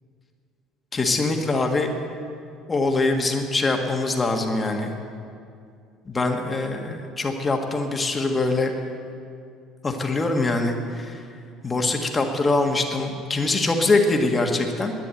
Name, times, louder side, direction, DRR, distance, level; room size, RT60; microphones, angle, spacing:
voice 1, 0.9-2.0 2.7-4.9 6.0-8.7 9.8-11.2 11.6-14.9, left 2 dB, 20° left, 3 dB, 1.6 m, -23 dB
11.5 x 9.6 x 9.0 m, 2.4 s
cardioid pair, 110°, 0 cm